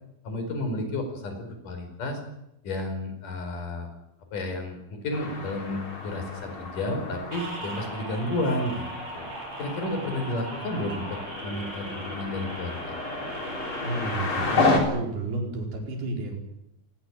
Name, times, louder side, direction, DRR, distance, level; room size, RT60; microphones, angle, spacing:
voice 1, 0.2-2.2 2.6-3.9 4.3-9.3 9.6-13.0, left 1 dB, 55° left, 6 dB, 6.3 m, -31 dB
sound 1, 5.1-14.8, left 3 dB, 35° left, 4.2 m, -32 dB
sound 2, 7.3-14.6, right 2 dB, 55° right, 7.2 m, -39 dB
voice 2, 13.8-16.4, right 2 dB, 90° right, 2 dB, 6.7 m, -32 dB
26.5 x 19.5 x 7.5 m, 0.83 s
omnidirectional pair, 4.4 m